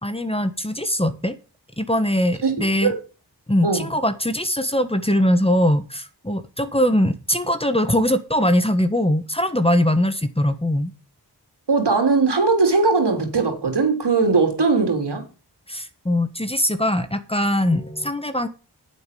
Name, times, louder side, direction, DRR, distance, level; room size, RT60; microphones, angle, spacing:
voice 1, 0.0-1.3 1.8-2.9 3.5-10.9 15.7-18.5, left 1 dB, 15° left, 1.4 m, -21 dB
voice 2, 11.7-15.2, right 4 dB, 75° right, 3.7 m, -19 dB
9.2 x 8.1 x 7.0 m
cardioid pair, 50°, 41 cm